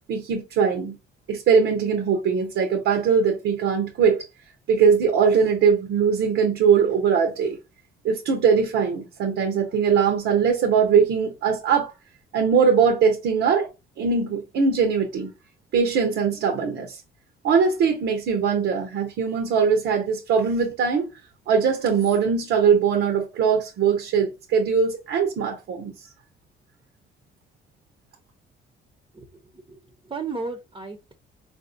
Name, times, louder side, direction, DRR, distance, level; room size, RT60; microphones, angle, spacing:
voice 1, 0.1-1.0 1.3-4.3 4.7-7.6 8.0-11.9 12.3-13.7 14.0-15.3 15.7-17.0 17.4-21.1 21.5-25.9, right 6 dB, 80° right, 0.8 m, -21 dB
voice 2, 29.1-29.8 30.0-31.1, right 4 dB, 25° right, 0.7 m, -34 dB
4.0 x 2.6 x 2.5 m
cardioid pair, 90°, 20 cm